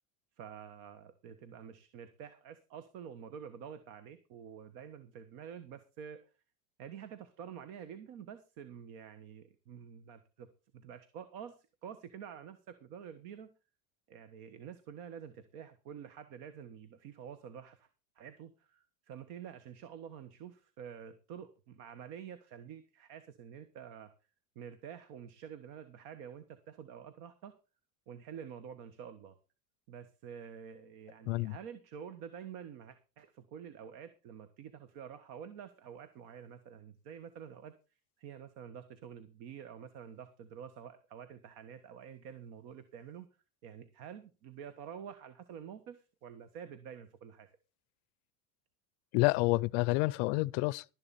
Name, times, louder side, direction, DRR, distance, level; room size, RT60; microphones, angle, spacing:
voice 1, 0.4-6.2 6.8-10.5 10.7-13.5 14.1-17.9 18.1-24.1 24.5-27.5 28.1-29.3 29.9-37.7 38.2-43.3 43.6-47.5, right 8 dB, 55° right, 1.4 m, -48 dB
voice 2, 31.3-31.6 49.1-50.8, left 22 dB, 55° left, 0.5 m, -29 dB
12.5 x 10.5 x 4.2 m
cardioid pair, 165°, 39 cm